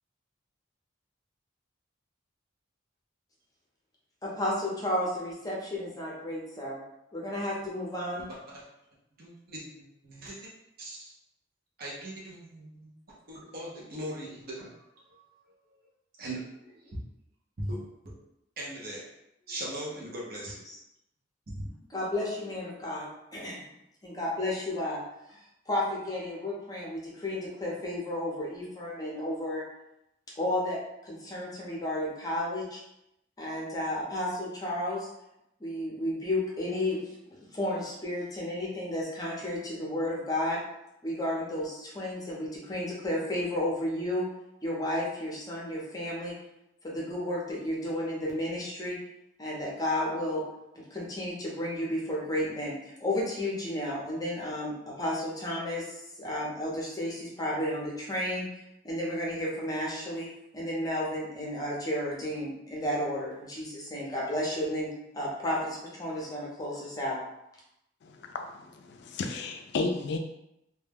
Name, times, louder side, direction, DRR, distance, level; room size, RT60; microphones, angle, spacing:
voice 1, 4.2-6.8 7.1-8.3 20.7-20.8 21.9-23.6 24.0-25.0 25.3-29.6 30.4-32.8 33.4-35.1 35.6-37.0 37.5-40.6 41.0-44.3 44.6-46.3 46.8-49.0 49.4-50.4 50.7-58.5 58.8-60.3 60.5-64.9 65.1-67.2, left 1 dB, 20° left, -4 dB, 0.6 m, -32 dB
voice 2, 9.2-10.4 10.8-11.1 11.8-12.9 13.3-14.8 15.1-15.4 16.2-17.0 17.6-17.8 18.0-18.1 18.6-19.1 19.5-20.6 21.5-21.7, right 1 dB, 50° right, -5 dB, 0.6 m, -39 dB
voice 3, 68.0-70.2, left 3 dB, 60° left, 4 dB, 0.3 m, -33 dB
2.2 x 2.1 x 3.3 m, 0.84 s
head